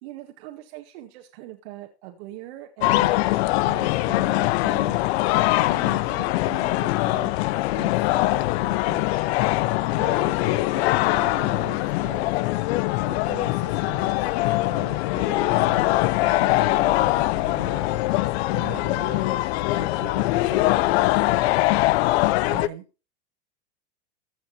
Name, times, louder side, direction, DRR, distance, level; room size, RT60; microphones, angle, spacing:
voice 1, 0.0-5.4 5.7-7.4 7.8-9.3 9.9-12.7 13.0-18.3 18.5-22.8, right 13 dB, 60° right, 4 dB, 1.8 m, -42 dB
sound 1, 2.8-22.7, left 18 dB, 60° left, 0.7 m, -22 dB
15.0 x 6.4 x 4.9 m, 0.32 s
supercardioid pair, 130°, 35 cm